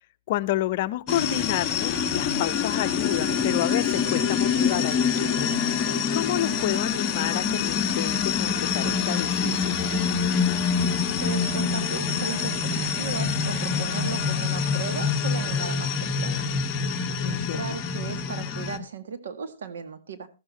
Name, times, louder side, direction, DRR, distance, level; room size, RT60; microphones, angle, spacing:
voice 1, 0.3-5.5 5.8-9.8 17.2-17.8, left 14 dB, 50° left, 12 dB, 0.7 m, -30 dB
sound 1, 1.1-18.8, left 6 dB, 25° left, 1.4 m, -26 dB
voice 2, 11.2-16.5 17.2-20.3, right 6 dB, 80° right, 11 dB, 1.9 m, -36 dB
15.0 x 14.0 x 2.9 m, 0.27 s
hypercardioid pair, 145°, 0 cm